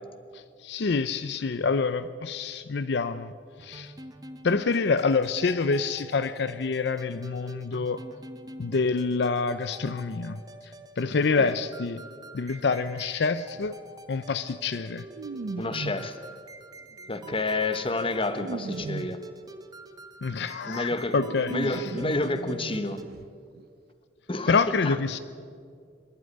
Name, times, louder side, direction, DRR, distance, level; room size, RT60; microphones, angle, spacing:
voice 1, 0.3-3.3 3.6-3.9 4.4-8.0 8.6-12.0 12.3-13.8 14.1-15.0 20.2-21.9 24.5-25.2, left 4 dB, 65° left, 13 dB, 0.5 m, -27 dB
sound 1, 3.6-23.0, right 2 dB, 20° right, 1.0 m, -47 dB
sound 2, 13.5-13.7 15.1-16.2 17.0-19.3 20.6-20.7 21.0-23.3 23.5-23.6 23.9-24.0, right 3 dB, 60° right, 0.5 m, -38 dB
voice 2, 15.6-16.2 17.1-19.2 20.7-21.1 21.5-23.0 24.3-24.5 24.8-25.0, left 2 dB, 30° left, 10 dB, 1.2 m, -29 dB
24.0 x 11.5 x 9.7 m, 2.2 s
head